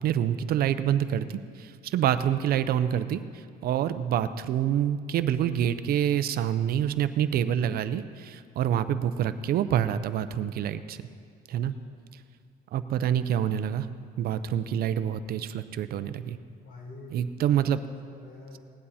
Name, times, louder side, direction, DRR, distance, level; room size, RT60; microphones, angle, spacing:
voice 1, 0.0-11.0 11.5-11.7 12.7-13.9 14.2-16.4 17.1-17.8, right 10 dB, 65° right, 12 dB, 0.6 m, -27 dB
voice 2, 11.5-11.9 16.6-18.6, left 3 dB, 65° left, -1 dB, 3.9 m, -48 dB
17.5 x 11.0 x 4.3 m, 2.2 s
cardioid pair, 110°, 17 cm